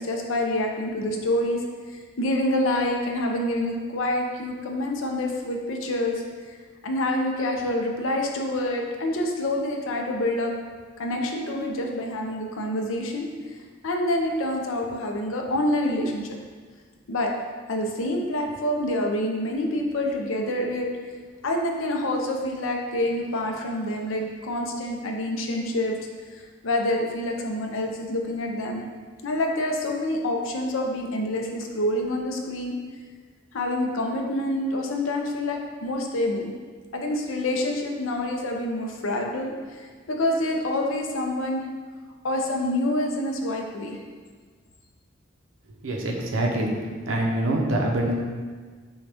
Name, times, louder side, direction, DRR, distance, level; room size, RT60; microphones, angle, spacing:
voice 1, 0.0-1.6 1.9-6.2 6.8-10.5 11.0-13.3 13.8-16.3 17.1-17.3 17.7-20.9 21.4-26.0 26.3-28.8 29.2-32.7 33.5-36.5 36.9-41.6 42.2-44.0, left 1 dB, 85° left, 2 dB, 0.6 m, -27 dB
voice 2, 45.8-46.7 47.1-48.2, right 1 dB, 90° right, 0 dB, 0.7 m, -25 dB
6.2 x 2.3 x 3.4 m, 1.5 s
head